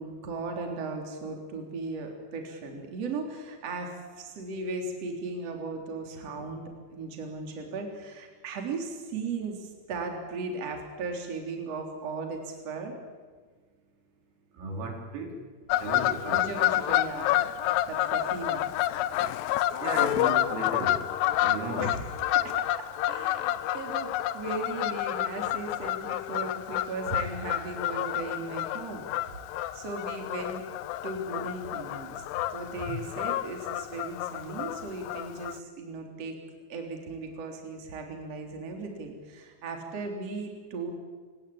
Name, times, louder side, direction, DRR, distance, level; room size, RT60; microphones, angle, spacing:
voice 1, 0.0-12.9 16.3-17.5 17.9-18.7 21.8-22.0 22.3-29.1 29.7-30.6 31.0-32.2 32.5-36.4 36.7-40.9, right 3 dB, 35° right, 3 dB, 3.9 m, -37 dB
voice 2, 14.5-15.4 15.8-16.5 19.8-21.0 21.4-21.9, right 3 dB, 85° right, 2 dB, 6.5 m, -35 dB
Fowl / Bird vocalization bird call bird song, 15.7-35.6, left 14 dB, 85° left, 2.4 m, -29 dB
29.5 x 17.0 x 8.7 m, 1.5 s
omnidirectional pair, 5.8 m